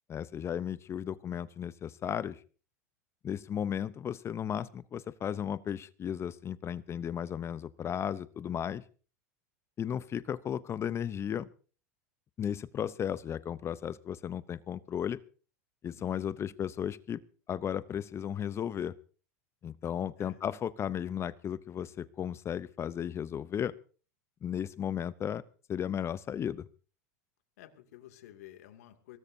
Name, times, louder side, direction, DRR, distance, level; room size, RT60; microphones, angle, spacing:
voice 1, 0.1-2.4 3.2-8.8 9.8-11.5 12.4-15.2 15.8-17.2 17.5-18.9 19.6-23.7 24.4-25.4 25.7-26.7, left 9 dB, 30° left, 17 dB, 0.7 m, -35 dB
voice 2, 15.9-16.4 20.2-20.4 27.6-29.2, left 13 dB, 70° left, 6 dB, 2.4 m, -53 dB
23.5 x 18.5 x 2.7 m, 0.39 s
hypercardioid pair, 90°, 9 cm